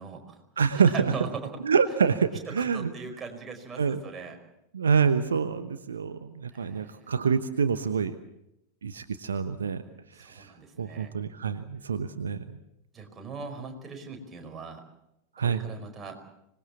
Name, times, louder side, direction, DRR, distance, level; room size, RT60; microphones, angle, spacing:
voice 1, 0.0-0.4 0.7-1.5 2.5-4.4 6.5-7.1 10.1-11.1 12.9-14.8 15.4-16.2, right 5 dB, 20° right, 3 dB, 5.1 m, -40 dB
voice 2, 0.6-1.1 1.6-2.9 3.8-4.0 4.7-8.2 8.8-9.8 10.2-10.5 10.8-12.6 15.4-15.6, right 6 dB, 70° right, 11 dB, 1.1 m, -26 dB
25.5 x 20.0 x 7.3 m, 0.82 s
figure-of-eight pair, 90°, 0 cm